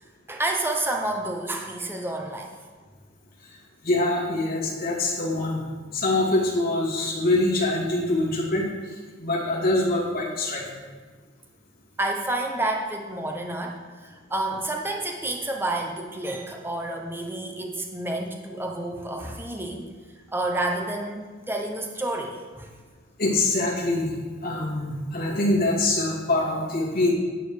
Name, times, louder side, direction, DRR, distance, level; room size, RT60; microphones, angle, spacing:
voice 1, 0.3-2.6 12.0-19.9 20.3-22.7, right 2 dB, 10° right, 2 dB, 0.8 m, -29 dB
voice 2, 3.8-5.6 5.9-10.8 23.2-24.2 24.4-27.1, left 2 dB, 45° left, -4 dB, 2.4 m, -24 dB
9.4 x 8.6 x 4.9 m, 1.5 s
head